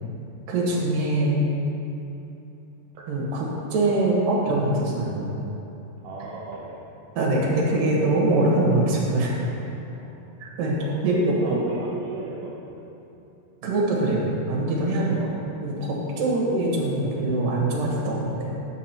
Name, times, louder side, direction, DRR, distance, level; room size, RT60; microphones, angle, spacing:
voice 1, 0.5-1.4 3.1-5.3 7.1-9.3 10.4-11.6 13.6-15.3 15.6-18.5, right 2 dB, 60° right, -4 dB, 2.7 m, -23 dB
voice 2, 6.0-6.9 9.9-10.1 10.8-11.1 11.4-12.8 15.1-15.5 16.2-16.3, right 4 dB, 75° right, -6 dB, 2.4 m, -38 dB
9.3 x 6.2 x 4.5 m, 2.9 s
omnidirectional pair, 5.3 m